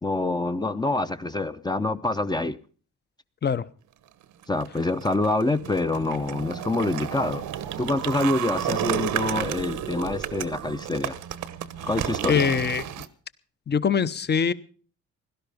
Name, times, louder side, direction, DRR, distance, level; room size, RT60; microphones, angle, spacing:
voice 1, 0.0-2.6 4.5-7.4 7.8-11.2 11.8-12.5, left 2 dB, 15° left, 0.7 m, -26 dB
sound 1, 4.4-13.1, right 11 dB, 80° right, 1.1 m, -32 dB
voice 2, 12.2-12.8 13.7-14.5, left 7 dB, 35° left, 0.9 m, -23 dB
17.0 x 12.0 x 5.3 m
cardioid pair, 90°, 30 cm